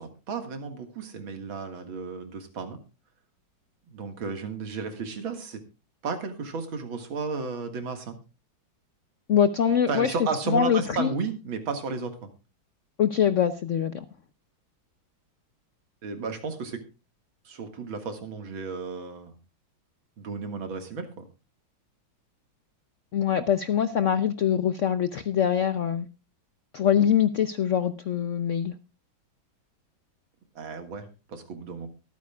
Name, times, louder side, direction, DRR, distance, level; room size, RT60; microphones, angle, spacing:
voice 1, 0.0-2.8 3.9-5.6 6.0-8.2 9.9-12.3 16.0-16.8 17.5-19.4 20.2-21.2 30.6-31.9, right 4 dB, 80° right, 7 dB, 2.6 m, -33 dB
voice 2, 9.3-10.1 10.5-11.1 13.0-14.0 23.1-26.1 26.7-28.7, left 8 dB, 85° left, 11 dB, 0.6 m, -23 dB
23.5 x 9.3 x 2.3 m, 0.30 s
omnidirectional pair, 2.2 m